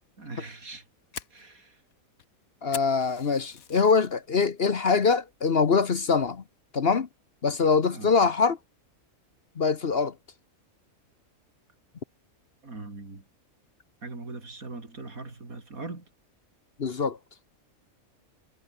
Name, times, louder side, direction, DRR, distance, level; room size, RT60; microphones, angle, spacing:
voice 1, 0.2-0.9 1.3-1.8 7.9-8.2 12.6-13.2 14.0-16.1, right 3 dB, 80° right, 4.5 m, -41 dB
Fire, 0.6-4.1 4.5-4.9 5.3-5.4 5.9-6.3, left 8 dB, 80° left, 1.7 m, -43 dB
voice 2, 2.6-6.4 6.7-7.1 7.4-8.6 9.6-10.1 16.8-17.2, left 5 dB, 45° left, 1.2 m, -23 dB
omnidirectional pair, 1.5 m